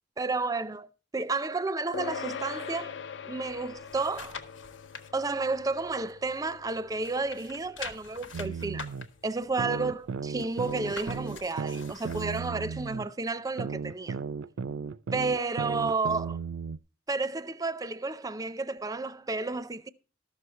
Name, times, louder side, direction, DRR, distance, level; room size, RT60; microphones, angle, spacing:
voice 1, 0.2-0.9 1.1-2.9 3.2-4.4 5.1-8.9 9.2-14.2 15.1-16.4 17.1-19.9, right 3 dB, 20° right, 0.5 m, -31 dB
sound 1, 1.9-11.6, left 7 dB, 65° left, 0.5 m, -44 dB
sound 2, 3.5-5.1 5.6-6.7 6.9-12.5 13.0-13.1, left 5 dB, 85° left, 1.4 m, -45 dB
sound 3, 8.3-9.1 9.6-13.1 13.6-16.8, right 5 dB, 80° right, 0.4 m, -35 dB
13.5 x 6.3 x 5.6 m
head